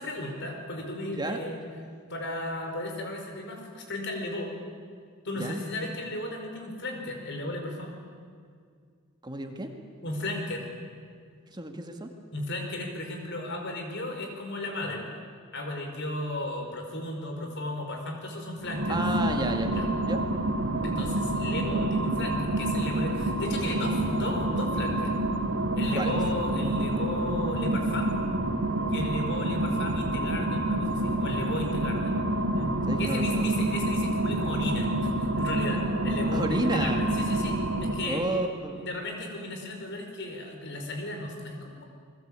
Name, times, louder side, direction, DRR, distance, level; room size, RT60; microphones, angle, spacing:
voice 1, 0.0-1.6 2.1-4.5 5.2-7.9 10.0-10.6 12.3-15.1 15.5-19.0 19.7-19.9 20.8-25.1 25.7-28.1 28.8-32.1 32.5-32.7 33.0-35.1 35.4-38.2 38.7-41.9, left 1 dB, 55° left, 3 dB, 5.2 m, -35 dB
voice 2, 9.2-9.7 11.5-12.1 18.9-19.7 20.0-20.2 25.9-26.2 32.9-33.5 36.3-37.0 38.0-38.8, right 1 dB, 20° right, 4 dB, 1.9 m, -31 dB
sound 1, 18.6-38.3, right 1 dB, 75° right, 2.6 m, -28 dB
29.5 x 21.0 x 8.9 m, 2.1 s
head